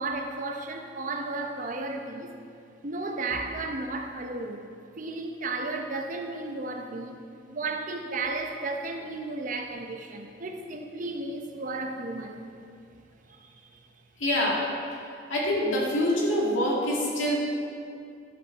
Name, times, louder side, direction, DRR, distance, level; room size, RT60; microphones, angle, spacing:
voice 1, 0.0-2.3 2.8-4.7 5.0-7.2 7.5-12.4 13.3-13.8, right 3 dB, 40° right, 3 dB, 0.7 m, -34 dB
voice 2, 14.2-14.6 15.3-17.4, left 1 dB, 85° left, -4 dB, 2.2 m, -25 dB
12.5 x 7.1 x 4.1 m, 2.4 s
head